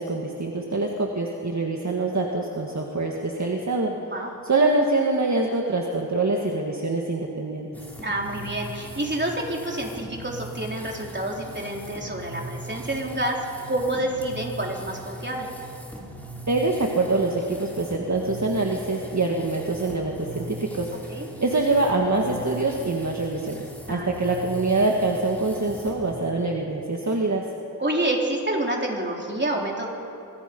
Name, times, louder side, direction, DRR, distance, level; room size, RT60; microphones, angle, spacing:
voice 1, 0.0-3.9 4.4-7.7 16.5-23.6 23.9-27.5, right 2 dB, 50° right, 0 dB, 1.8 m, -25 dB
sound 1, 7.7-26.1, right 1 dB, 5° left, 3.6 m, -40 dB
voice 2, 8.0-13.4 13.7-15.5 21.1-21.3 23.9-24.4 27.8-29.9, right 1 dB, 30° right, -1 dB, 3.8 m, -28 dB
26.0 x 23.0 x 5.4 m, 2.7 s
wide cardioid pair, 70°, 36 cm